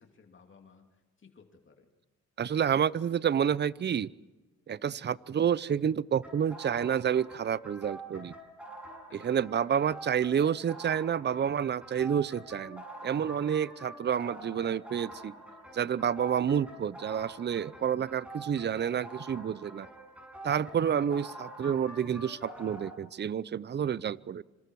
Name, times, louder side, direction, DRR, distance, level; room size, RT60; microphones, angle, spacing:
voice 1, 0.0-1.9 9.1-9.3, left 5 dB, 40° left, 4 dB, 2.8 m, -58 dB
voice 2, 2.4-4.1 4.7-8.3 9.1-15.4 15.7-19.9 20.4-24.4, right 8 dB, 35° right, 20 dB, 0.6 m, -29 dB
sound 1, 6.2-22.9, right 1 dB, 5° right, 7.5 m, -46 dB
27.0 x 26.0 x 4.7 m, 1.2 s
cardioid pair, 90°, 30 cm